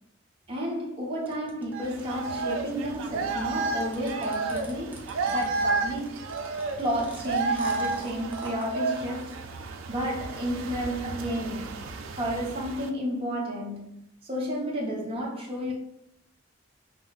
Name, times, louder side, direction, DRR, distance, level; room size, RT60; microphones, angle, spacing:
voice 1, 0.5-6.2 6.8-9.4 9.9-11.9 12.1-15.7, equal, 30° right, 0.9 m, -32 dB
sound 1, 1.3-8.7, right 1 dB, 10° right, 0.5 m, -46 dB
sound 2, 1.7-12.9, right 3 dB, 90° right, 0.4 m, -32 dB
5.6 x 2.1 x 2.4 m
head